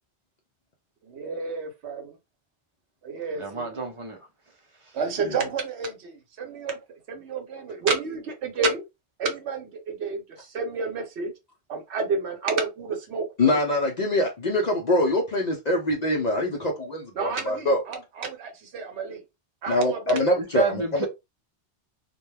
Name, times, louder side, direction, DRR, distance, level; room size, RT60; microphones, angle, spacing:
voice 1, 1.0-2.2 3.0-3.8 4.9-6.8 7.1-8.8 9.2-11.3 11.7-13.6 17.2-19.2 19.6-20.2, right 4 dB, 75° right, 1.0 m, -30 dB
voice 2, 3.3-4.2 20.4-21.1, right 3 dB, 40° right, 0.5 m, -29 dB
voice 3, 13.4-17.8 19.7-21.1, left 1 dB, 55° left, 0.5 m, -24 dB
2.2 x 2.2 x 3.1 m
omnidirectional pair, 1.2 m